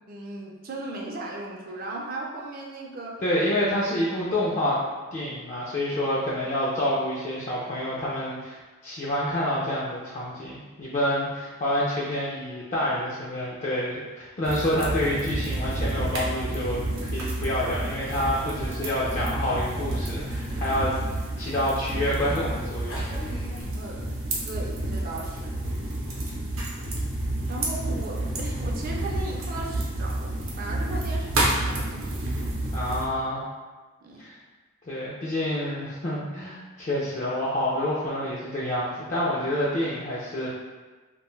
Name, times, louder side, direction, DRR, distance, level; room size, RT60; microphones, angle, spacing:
voice 1, 0.1-3.2 23.8-24.1 24.5-25.5 27.5-32.2 34.0-34.2, right 2 dB, 45° right, -1 dB, 0.5 m, -37 dB
voice 2, 3.2-4.8 5.1-8.6 8.8-23.0 32.7-33.4 34.2-34.4 34.9-40.5, left 1 dB, 35° left, -7 dB, 0.4 m, -28 dB
sound 1, 14.4-23.6, equal, 90° left, 0.7 m, -45 dB
sound 2, 14.4-33.0, right 1 dB, 90° right, 0.6 m, -30 dB
2.5 x 2.2 x 3.0 m, 1.3 s
head